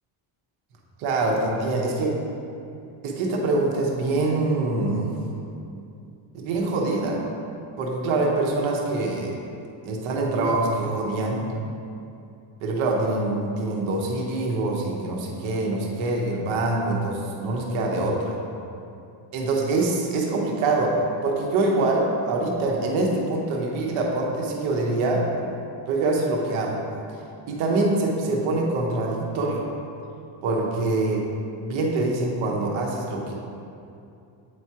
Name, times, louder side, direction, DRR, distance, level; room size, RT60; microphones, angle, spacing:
voice 1, 1.0-2.1 3.0-5.2 6.3-7.2 7.8-9.4 9.8-11.5 12.6-18.4 19.3-25.5 25.9-26.8 27.5-29.7 30.4-31.3 31.6-33.3, right 2 dB, 75° right, -1 dB, 1.0 m, -24 dB
8.4 x 4.7 x 2.9 m, 2.7 s
cardioid pair, 175°, 48 cm